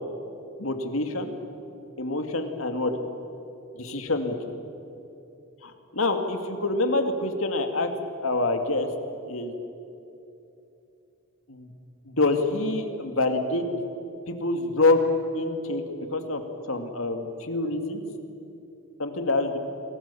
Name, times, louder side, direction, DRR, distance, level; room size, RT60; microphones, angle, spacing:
voice 1, 0.6-1.3 2.0-2.9 3.7-4.3 5.6-7.9 8.2-8.9 9.3-9.5 11.5-11.7 12.1-13.7 14.3-15.0 15.3-15.8 16.1-16.4 16.7-18.0 19.0-19.6, left 2 dB, 75° left, 6 dB, 2.5 m, -26 dB
29.5 x 22.5 x 7.1 m, 2.8 s
head